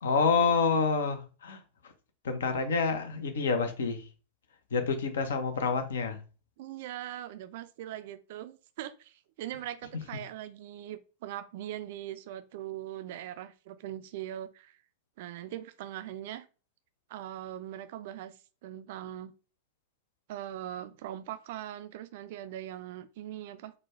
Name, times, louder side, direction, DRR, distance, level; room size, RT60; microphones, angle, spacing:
voice 1, 0.0-1.6 2.2-4.0 4.7-6.2, left 5 dB, 65° left, 0.6 m, -28 dB
voice 2, 6.6-14.8 15.2-16.5 17.1-18.3 18.6-19.3 20.3-23.7, right 12 dB, 50° right, 0.3 m, -41 dB
4.0 x 2.2 x 3.0 m
figure-of-eight pair, 90°, 0 cm